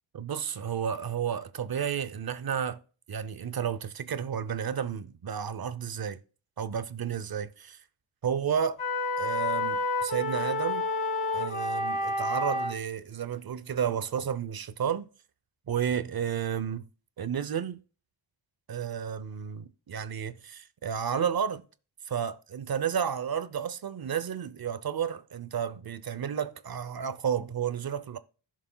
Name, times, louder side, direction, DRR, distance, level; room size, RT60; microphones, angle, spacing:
voice 1, 0.1-2.8 3.1-6.2 6.6-7.8 8.2-8.8 9.2-10.9 11.3-15.1 15.7-16.9 17.2-17.8 18.7-21.6 22.1-28.2, right 8 dB, 45° right, 0.7 m, -32 dB
sound 1, 8.8-12.8, left 2 dB, 90° left, 2.2 m, -29 dB
15.0 x 6.3 x 2.2 m
wide cardioid pair, 160°, 49 cm